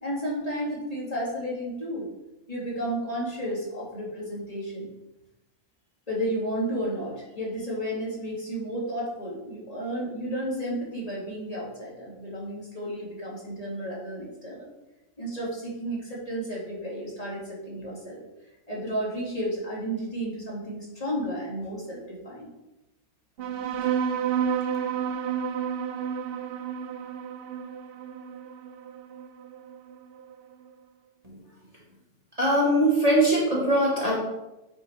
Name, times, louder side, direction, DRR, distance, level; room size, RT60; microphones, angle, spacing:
voice 1, 0.0-2.1 2.5-4.9 6.1-14.7 15.2-18.2 18.7-22.5, equal, 25° left, -6 dB, 2.3 m, -32 dB
sound 1, 23.4-30.3, right 8 dB, 60° right, 0.6 m, -30 dB
voice 2, 32.4-34.1, right 1 dB, 25° right, -5 dB, 1.7 m, -21 dB
9.4 x 6.3 x 3.4 m, 0.98 s
omnidirectional pair, 1.5 m